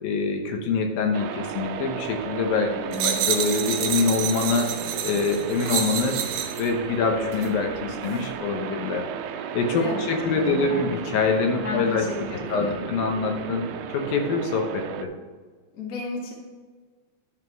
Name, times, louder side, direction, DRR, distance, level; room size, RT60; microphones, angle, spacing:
voice 1, 0.0-2.7 3.0-6.2 6.6-9.1 9.4-12.1 12.5-13.6 13.9-15.1, left 4 dB, 75° left, 3 dB, 2.6 m, -25 dB
sound 1, 1.1-15.1, right 9 dB, 90° right, 1.9 m, -35 dB
voice 2, 2.7-3.2 9.8-10.8 11.6-12.9 15.7-16.3, left 3 dB, 40° left, -2 dB, 1.3 m, -34 dB
sound 2, 2.9-6.7 7.3-7.5, right 8 dB, 75° right, 2.2 m, -28 dB
11.0 x 5.9 x 4.5 m, 1.5 s
omnidirectional pair, 4.5 m